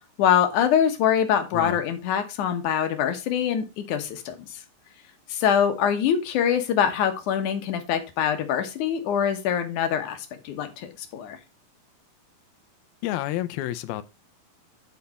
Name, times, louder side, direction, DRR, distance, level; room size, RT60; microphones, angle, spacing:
voice 1, 0.2-4.6 5.3-11.4, left 8 dB, 65° left, 2.4 m, -24 dB
voice 2, 13.0-14.0, left 14 dB, 90° left, 2.6 m, -29 dB
8.6 x 5.5 x 4.2 m
omnidirectional pair, 4.2 m